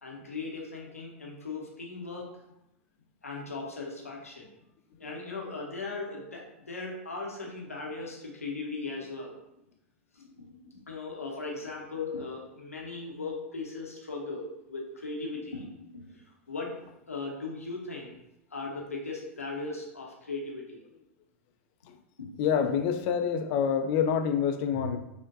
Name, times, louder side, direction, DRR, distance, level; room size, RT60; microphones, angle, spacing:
voice 1, 0.0-2.3 3.2-4.5 5.0-9.3 10.1-18.2 18.5-20.8 22.2-22.3 22.6-22.7 24.7-25.0, left 3 dB, 85° left, -1 dB, 0.7 m, -38 dB
voice 2, 22.4-25.0, left 7 dB, 45° left, 7 dB, 0.4 m, -27 dB
5.3 x 2.2 x 2.5 m, 0.85 s
figure-of-eight pair, 95°, 8 cm